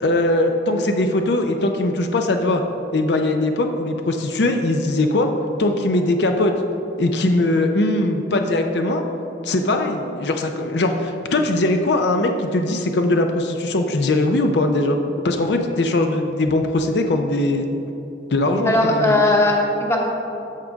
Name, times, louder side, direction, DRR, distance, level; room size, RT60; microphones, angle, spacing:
voice 1, 0.0-2.6 2.9-5.3 5.6-6.5 7.0-9.0 9.4-15.0 15.2-17.7 18.3-19.2, left 2 dB, 75° left, 5 dB, 0.6 m, -20 dB
voice 2, 18.6-20.0, left 2 dB, 15° left, -1 dB, 0.9 m, -18 dB
14.0 x 5.1 x 3.6 m, 3.0 s
head